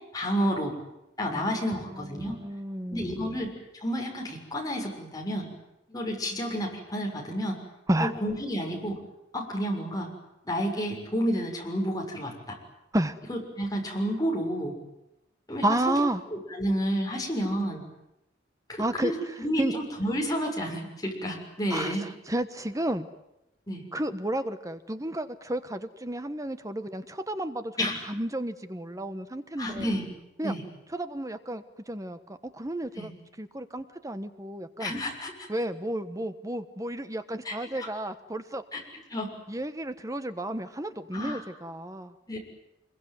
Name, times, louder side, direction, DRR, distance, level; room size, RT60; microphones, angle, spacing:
voice 1, 0.1-0.8 1.2-2.4 2.9-3.5 3.8-5.5 5.9-7.6 8.0-9.0 9.3-10.1 10.4-12.6 13.3-14.7 15.5-15.7 16.3-17.8 18.7-19.1 19.4-22.0 23.7-23.8 27.8-28.0 29.6-30.1 30.4-30.6 32.9-33.1 34.8-35.5 37.4-37.9 38.7-38.8 39.1-39.3 41.1-41.4 42.3-42.4, equal, 20° left, 0 dB, 6.5 m, -30 dB
voice 2, 1.9-3.4 7.9-8.1 12.9-13.1 15.6-16.2 18.8-19.7 21.7-23.1 23.9-29.9 30.4-30.5 30.9-33.1 33.4-34.9 35.5-38.6 39.5-42.1, right 1 dB, 15° right, 10 dB, 1.2 m, -32 dB
25.5 x 22.5 x 9.5 m, 0.87 s
head